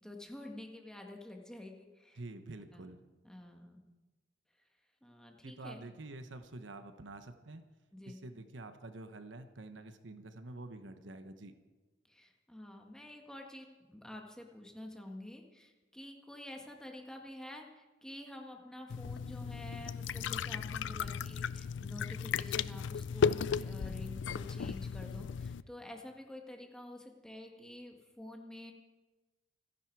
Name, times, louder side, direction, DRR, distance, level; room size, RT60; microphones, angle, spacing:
voice 1, 0.0-2.2 2.7-2.9 3.2-3.8 5.0-5.8 7.9-8.2 12.0-28.7, left 1 dB, 5° left, 2 dB, 1.7 m, -49 dB
voice 2, 2.2-3.0 5.4-7.6 8.0-11.5, right 2 dB, 70° right, 9 dB, 1.1 m, -47 dB
sound 1, 18.9-25.6, left 6 dB, 65° left, 0.4 m, -35 dB
27.0 x 10.5 x 4.7 m, 1.2 s
head